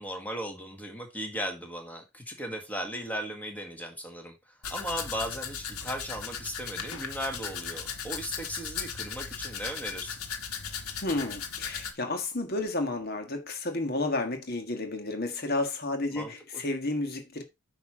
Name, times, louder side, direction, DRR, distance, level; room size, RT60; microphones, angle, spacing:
voice 1, 0.0-10.2 16.1-16.3, equal, 5° left, 1.7 m, -37 dB
Domestic sounds home sounds, 4.6-11.9, left 7 dB, 90° left, 1.4 m, -37 dB
voice 2, 11.0-17.4, left 2 dB, 45° left, 1.6 m, -31 dB
9.3 x 3.1 x 6.1 m
head